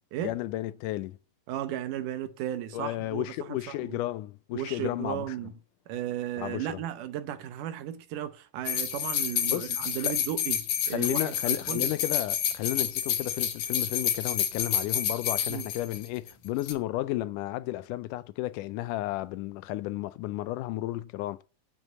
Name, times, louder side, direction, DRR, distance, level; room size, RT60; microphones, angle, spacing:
voice 1, 0.2-1.2 2.7-5.4 6.4-6.8 9.5-10.1 10.9-21.4, left 16 dB, 80° left, 2.1 m, -33 dB
voice 2, 1.5-4.0 4.5-5.5 5.9-11.9 15.5-15.7, right 11 dB, 80° right, 2.5 m, -35 dB
sound 1, 8.7-16.3 16.6-16.7, left 9 dB, 65° left, 2.6 m, -29 dB
9.7 x 5.4 x 8.1 m
omnidirectional pair, 3.7 m